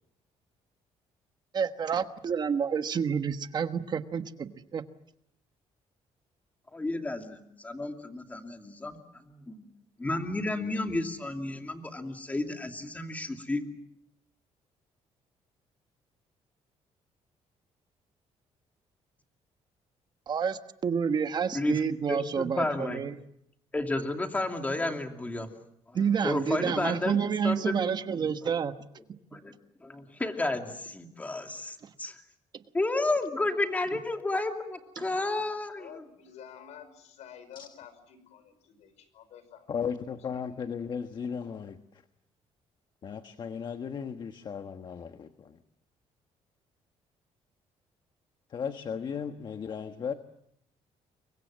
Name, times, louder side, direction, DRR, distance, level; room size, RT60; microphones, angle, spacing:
voice 1, 1.5-4.8 20.3-23.1 25.9-28.7 35.0-35.1, right 6 dB, 40° right, 9 dB, 1.3 m, -29 dB
voice 2, 6.7-9.0 9.3-9.6 10.0-13.6 21.5-21.8 22.1-23.0 23.7-25.5 26.2-28.0 29.3-29.5 29.8-32.1 32.7-35.9, left 2 dB, 15° left, 4 dB, 2.7 m, -32 dB
voice 3, 35.8-39.7 40.3-40.4, left 8 dB, 80° left, 12 dB, 5.3 m, -50 dB
voice 4, 39.7-42.0 43.0-45.6 48.5-50.1, left 7 dB, 40° left, 8 dB, 1.3 m, -36 dB
29.5 x 24.0 x 7.5 m, 0.74 s
cardioid pair, 150°, 12 cm